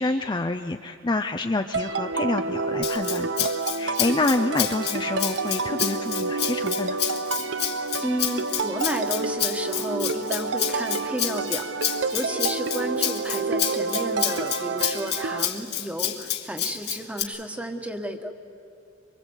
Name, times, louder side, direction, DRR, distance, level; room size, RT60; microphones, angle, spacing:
voice 1, 0.0-3.5 3.8-7.0, left 2 dB, 25° left, 6 dB, 0.6 m, -27 dB
sound 1, 1.7-15.5, right 3 dB, 70° right, 0.8 m, -29 dB
Rattle (instrument), 2.8-17.2, left 11 dB, 60° left, 1.7 m, -29 dB
voice 2, 8.0-18.3, right 1 dB, 5° right, 5 dB, 1.5 m, -32 dB
24.0 x 23.5 x 8.1 m, 2.7 s
head